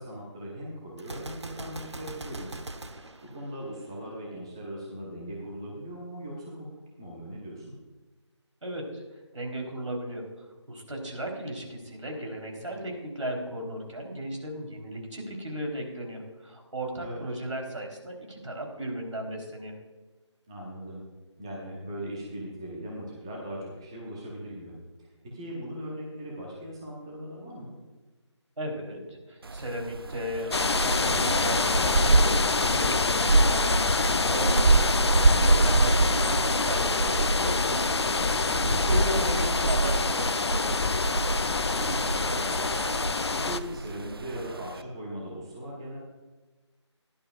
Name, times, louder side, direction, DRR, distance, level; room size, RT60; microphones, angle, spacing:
voice 1, 0.0-2.6 2.9-7.8 16.9-17.2 20.5-21.0 21.4-27.8 35.3-35.8 41.7-42.6 43.0-46.0, equal, 10° right, -4 dB, 0.9 m, -39 dB
Gunshot gunfire, 1.0-4.1, right 2 dB, 65° right, 1.1 m, -41 dB
voice 2, 8.6-9.0 9.3-10.3 10.7-19.7 28.6-34.6 34.9-40.9, right 1 dB, 85° right, 1 dB, 3.8 m, -36 dB
sound 1, 29.4-44.8, right 3 dB, 50° right, 0.4 m, -27 dB
sound 2, 30.5-43.6, left 3 dB, 60° left, 0.6 m, -26 dB
16.0 x 11.5 x 2.4 m, 1.2 s
figure-of-eight pair, 175°, 15 cm